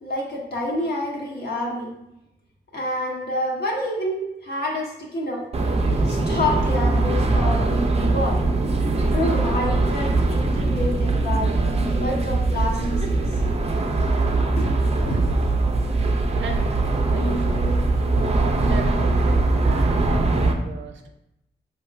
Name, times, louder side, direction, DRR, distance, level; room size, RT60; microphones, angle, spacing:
voice 1, 0.0-1.9 2.7-5.4 6.0-8.4 9.1-11.6 12.0-13.2 14.6-14.7 15.1-15.4, left 1 dB, 60° left, -3 dB, 1.0 m, -28 dB
sound 1, 5.5-20.5, right 2 dB, 35° right, 0.5 m, -21 dB
voice 2, 17.0-17.8 18.6-21.1, right 4 dB, 90° right, 4 dB, 0.4 m, -36 dB
4.2 x 2.8 x 2.4 m, 0.84 s
cardioid pair, 65°, 19 cm